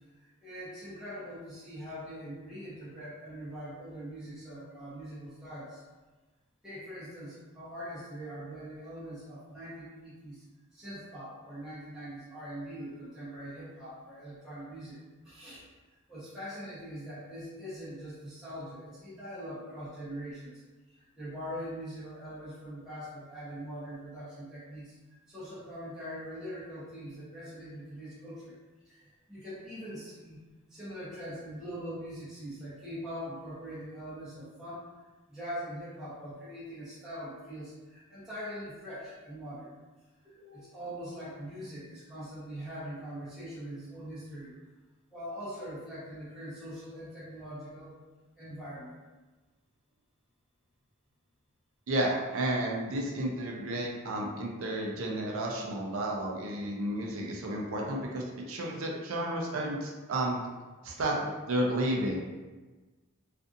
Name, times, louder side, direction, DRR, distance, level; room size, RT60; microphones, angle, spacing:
voice 1, 0.1-5.8 6.6-10.4 10.7-15.0 15.2-15.7 16.1-20.6 20.9-24.9 25.3-28.6 28.8-30.4 30.7-35.0 35.3-39.8 40.2-44.5 45.1-47.9 48.4-49.0, equal, 5° right, -12 dB, 0.8 m, -42 dB
voice 2, 51.9-60.4 60.8-62.2, right 1 dB, 65° right, -1 dB, 0.5 m, -32 dB
2.5 x 2.5 x 2.5 m, 1.2 s
head